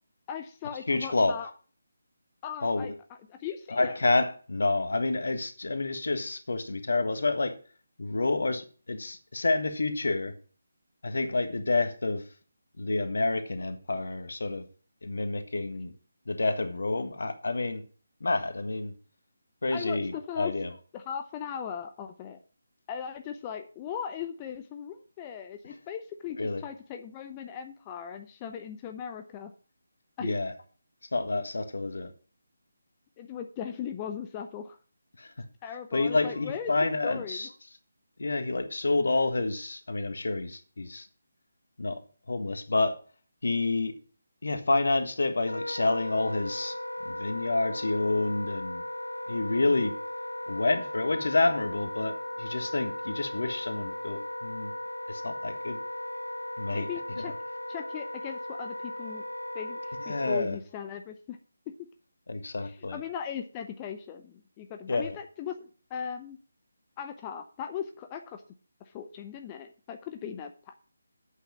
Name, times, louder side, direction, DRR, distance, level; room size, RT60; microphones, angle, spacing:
voice 1, 0.3-1.5 2.4-2.9 3.3-4.0 19.7-20.5 20.9-22.4 22.9-29.5 30.2-30.4 33.2-34.8 35.6-36.7 37.0-37.5 56.7-57.3 57.7-59.2 59.5-61.4 62.6-66.4 67.0-68.4 68.9-70.8, left 8 dB, 20° left, 0.6 m, -38 dB
voice 2, 0.9-1.4 2.6-2.9 3.7-7.6 8.0-10.3 11.0-12.2 12.8-14.6 15.0-15.9 16.3-17.8 18.2-18.9 19.6-20.7 26.4-26.6 30.2-30.5 31.1-32.1 35.2-35.3 35.9-37.5 38.2-41.1 41.8-42.0 42.3-43.0 43.4-43.9 44.4-46.7 47.0-48.8 49.3-49.9 50.5-54.7 55.1-55.8 56.6-56.9 57.2-57.3 60.1-60.6 62.3-63.0 64.9-65.2, left 3 dB, 65° left, 1.5 m, -28 dB
Wind instrument woodwind instrument, 45.4-60.4, left 1 dB, 85° left, 0.7 m, -37 dB
8.3 x 5.8 x 7.1 m
figure-of-eight pair, 155°, 0 cm